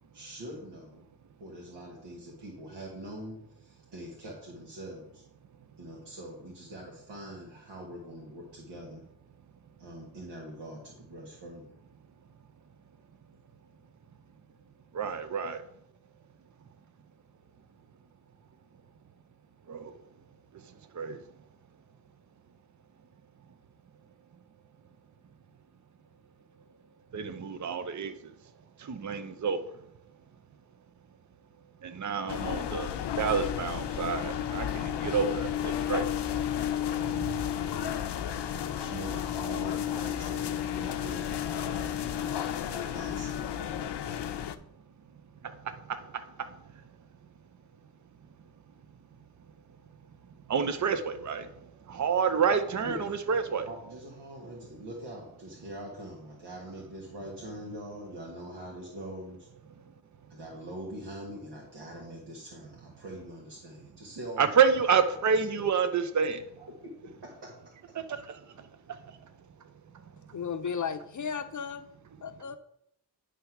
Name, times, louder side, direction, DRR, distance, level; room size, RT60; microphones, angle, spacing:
voice 1, 0.1-1.0 1.4-5.2 5.8-9.0 9.8-11.8 38.4-44.2 51.9-52.1 52.8-53.1 53.7-59.5 60.3-64.6 65.5-65.6 66.6-67.7, right 1 dB, 90° right, 1.6 m, -44 dB
voice 2, 14.9-15.6 19.7-19.9 21.0-21.2 27.1-28.1 28.9-29.6 31.8-36.1 37.0-37.4 50.5-51.5 51.9-53.7 64.4-66.4 68.1-68.2, right 6 dB, 45° right, 0.7 m, -28 dB
sound 1, 32.3-44.6, left 10 dB, 90° left, 0.6 m, -32 dB
voice 3, 70.3-71.9 72.2-72.6, left 6 dB, 50° left, 0.5 m, -34 dB
9.5 x 3.4 x 5.8 m
wide cardioid pair, 105°, 40 cm